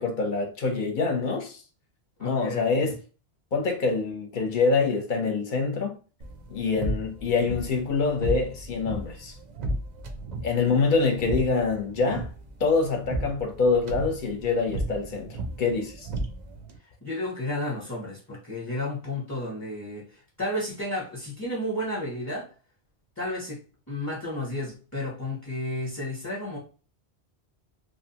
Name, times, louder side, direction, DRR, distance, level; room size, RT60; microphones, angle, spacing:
voice 1, 0.0-1.6 2.2-2.9 3.5-6.0 6.5-9.3 10.4-12.3 12.6-16.1, left 4 dB, 55° left, 0.7 m, -25 dB
voice 2, 2.2-2.9 17.0-22.5 23.2-26.6, left 1 dB, 20° left, 0.6 m, -32 dB
sound 1, 6.2-16.8, right 1 dB, 55° right, 0.5 m, -35 dB
2.8 x 2.2 x 2.7 m
omnidirectional pair, 1.1 m